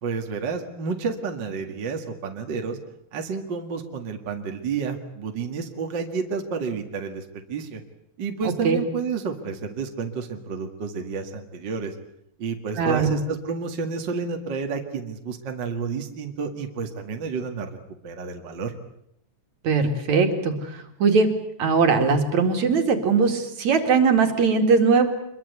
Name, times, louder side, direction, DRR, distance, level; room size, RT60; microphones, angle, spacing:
voice 1, 0.0-2.8 3.1-7.8 8.2-11.9 12.4-17.7 18.0-18.7, right 5 dB, 40° right, 3 dB, 2.2 m, -30 dB
voice 2, 8.4-8.8 12.8-13.1 19.6-21.3 21.6-25.1, right 5 dB, 60° right, 5 dB, 3.6 m, -20 dB
26.0 x 22.5 x 8.3 m, 0.73 s
omnidirectional pair, 3.8 m